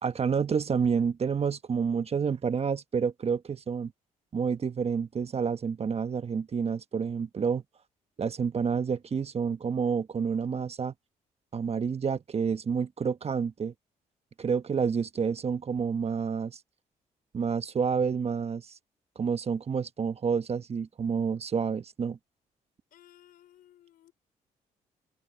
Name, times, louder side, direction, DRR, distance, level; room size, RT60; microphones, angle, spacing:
voice 1, 0.0-3.9 4.3-7.6 8.2-10.9 11.5-13.7 14.4-16.6 17.3-18.7 19.1-22.2, right 6 dB, 45° right, 1.3 m, -29 dB
voice 2, 22.9-24.1, left 12 dB, 75° left, 4.8 m, -57 dB
supercardioid pair, 65°, 15 cm